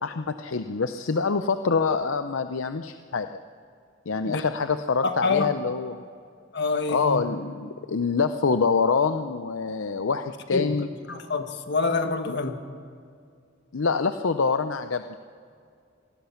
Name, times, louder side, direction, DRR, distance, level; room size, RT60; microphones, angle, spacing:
voice 1, 0.0-3.3 4.1-6.0 6.9-10.9 12.3-12.4 13.7-15.2, left 5 dB, 75° left, 0.6 m, -25 dB
voice 2, 5.0-5.5 6.5-7.2 10.5-10.7 11.1-12.6, left 4 dB, 55° left, 1.6 m, -26 dB
26.0 x 19.5 x 5.8 m
head